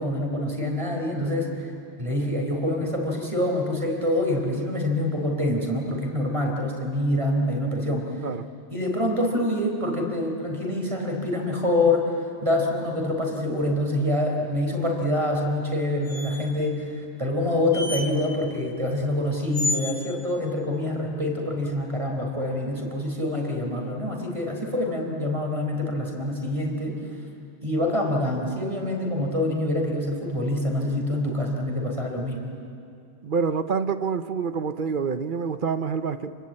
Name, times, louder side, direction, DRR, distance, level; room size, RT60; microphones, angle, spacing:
voice 1, 0.0-1.7 2.0-8.1 8.7-27.0 27.6-32.4, left 1 dB, 25° right, 1 dB, 4.1 m, -26 dB
sound 1, 16.1-16.6 17.7-18.1 19.5-20.0, left 2 dB, 85° left, 2.2 m, -30 dB
voice 2, 33.2-36.4, right 5 dB, 50° right, 11 dB, 0.9 m, -27 dB
28.5 x 21.0 x 8.7 m, 2.4 s
omnidirectional pair, 1.2 m